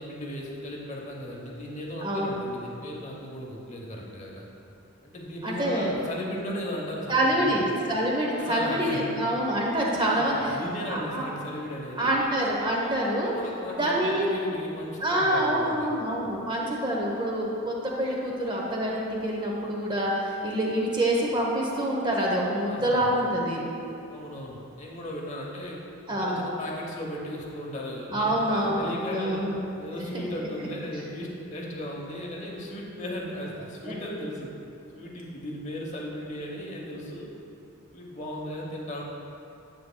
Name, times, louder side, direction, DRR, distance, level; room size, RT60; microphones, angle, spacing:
voice 1, 0.0-4.5 5.0-7.8 8.4-9.1 10.0-12.2 13.2-15.9 22.7-23.1 24.1-29.4 29.7-34.5 34.9-37.3 37.9-39.0, equal, 30° left, -2 dB, 0.9 m, -36 dB
voice 2, 2.0-2.3 5.4-6.0 7.1-10.6 10.9-11.2 12.0-13.3 13.7-14.3 15.0-23.7 26.1-26.4 28.1-29.6 30.1-30.3 33.9-34.0, right 1 dB, 20° right, -2 dB, 0.8 m, -26 dB
10.0 x 7.9 x 2.2 m, 2.7 s
head